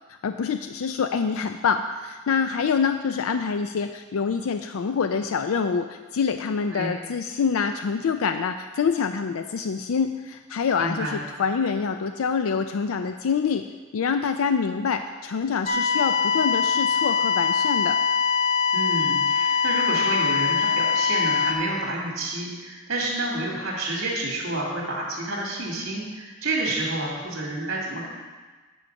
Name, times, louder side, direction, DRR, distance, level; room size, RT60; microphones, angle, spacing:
voice 1, 0.2-13.7 13.9-18.0, left 6 dB, 85° left, 8 dB, 0.4 m, -26 dB
voice 2, 10.8-11.2 18.7-28.1, right 2 dB, 65° right, -4 dB, 2.3 m, -29 dB
sound 1, 15.7-21.5, left 6 dB, 30° left, 0.8 m, -22 dB
9.9 x 5.8 x 5.3 m, 1.3 s
head